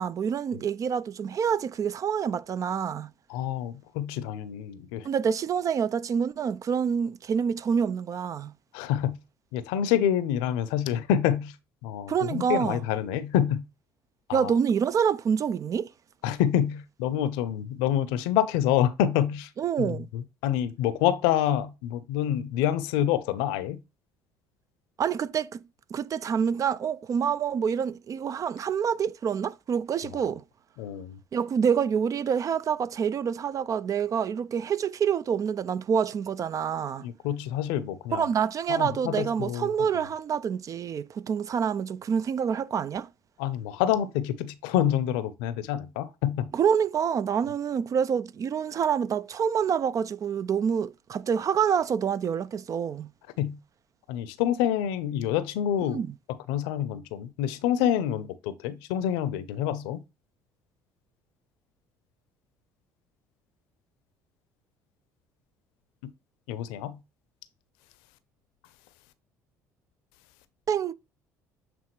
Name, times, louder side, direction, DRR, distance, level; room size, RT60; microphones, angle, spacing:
voice 1, 0.0-3.1 5.0-8.5 12.1-12.8 14.3-15.9 19.6-20.1 25.0-25.6 25.9-30.4 31.3-37.1 38.1-43.1 46.5-53.1 55.9-56.1 70.7-70.9, right 7 dB, 40° right, 0.5 m, -27 dB
voice 2, 3.3-5.1 8.7-9.2 9.5-11.6 11.8-13.6 14.3-14.5 16.2-19.5 19.8-23.8 30.0-30.3 30.8-31.2 37.0-38.3 38.7-40.1 43.4-46.5 53.4-53.6 54.1-56.0 56.5-60.0 66.5-67.0, left 10 dB, 70° left, 0.7 m, -27 dB
8.0 x 3.6 x 3.2 m
hypercardioid pair, 60°, 9 cm